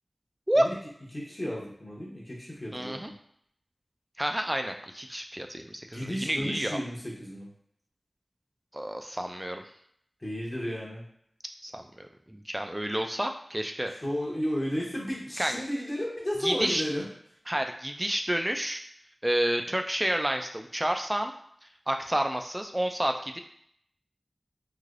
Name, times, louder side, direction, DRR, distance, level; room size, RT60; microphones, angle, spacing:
voice 1, 1.1-3.1 5.9-7.5 10.2-11.0 13.9-17.0, equal, 30° left, -4 dB, 0.8 m, -33 dB
voice 2, 2.7-3.1 4.2-6.8 8.7-9.6 11.6-13.9 15.4-15.5 16.4-16.8 17.5-18.8 19.2-21.3 21.9-23.4, right 1 dB, 15° right, 5 dB, 0.3 m, -29 dB
3.2 x 2.6 x 2.4 m, 0.67 s
wide cardioid pair, 65°, 0 cm